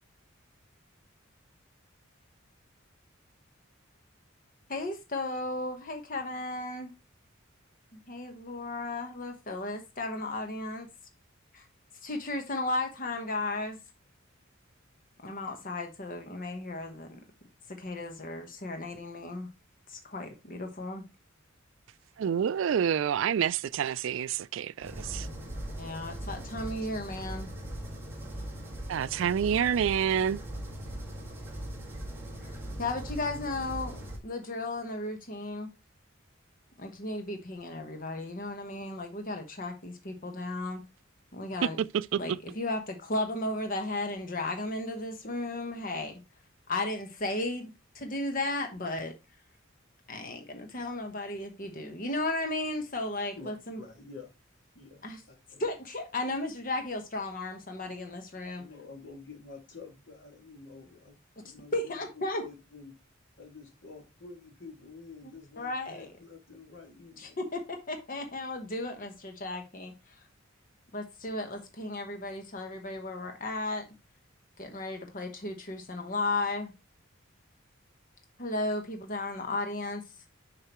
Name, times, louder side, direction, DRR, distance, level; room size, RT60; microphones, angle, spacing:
voice 1, 4.7-6.9 7.9-10.9 11.5-11.6 12.0-13.8 15.2-17.2 17.8-19.5 19.9-21.0 25.8-27.5 32.4-35.7 36.8-40.8 41.3-41.8 42.2-46.2 46.7-49.1 50.1-53.8 55.0-55.2 55.6-58.6 61.7-62.4 65.2-65.3 65.6-66.1 67.2-67.6 67.9-69.9 70.9-73.8 74.6-76.7 78.4-80.0, left 2 dB, 40° left, 1.1 m, -35 dB
voice 2, 22.2-25.3 28.9-30.4 41.9-42.2, right 8 dB, 65° right, 0.3 m, -28 dB
sound 1, 24.8-34.2, right 1 dB, 10° right, 1.9 m, -40 dB
voice 3, 53.3-54.3 54.7-55.6 58.6-63.0 63.4-67.4, left 4 dB, 65° left, 2.1 m, -49 dB
6.7 x 5.7 x 3.0 m
head